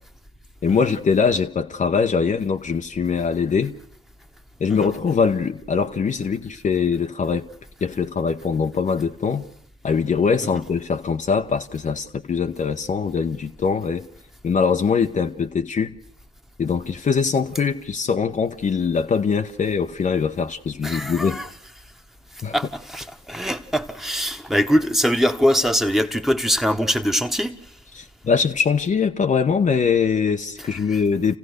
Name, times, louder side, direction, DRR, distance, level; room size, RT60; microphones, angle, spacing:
voice 1, 0.6-3.7 4.6-7.5 7.8-9.5 9.8-14.1 14.4-15.9 16.6-21.4 22.4-22.5 27.9-31.4, left 5 dB, 40° left, 1.0 m, -22 dB
voice 2, 20.8-21.5 22.5-27.5 30.6-30.7, equal, ahead, 1.4 m, -22 dB
28.5 x 15.5 x 6.6 m
hypercardioid pair, 50°, 20 cm